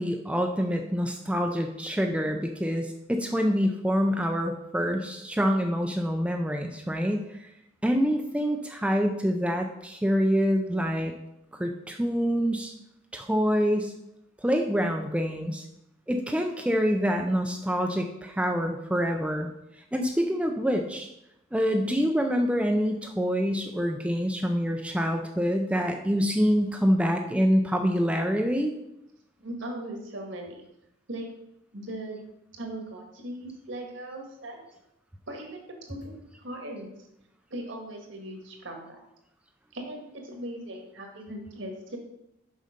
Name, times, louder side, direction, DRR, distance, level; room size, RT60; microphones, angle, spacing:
voice 1, 0.0-7.5 7.8-11.1 11.6-12.7 13.1-13.9 14.4-15.6 16.1-19.5 19.9-21.1 21.5-28.7, equal, 5° right, 3 dB, 0.4 m, -26 dB
voice 2, 29.4-30.6 31.1-31.3 31.7-32.2 32.5-34.6 35.3-36.9 37.5-39.0 39.7-42.0, right 1 dB, 65° right, 2 dB, 1.6 m, -39 dB
6.5 x 5.4 x 5.1 m, 0.86 s
head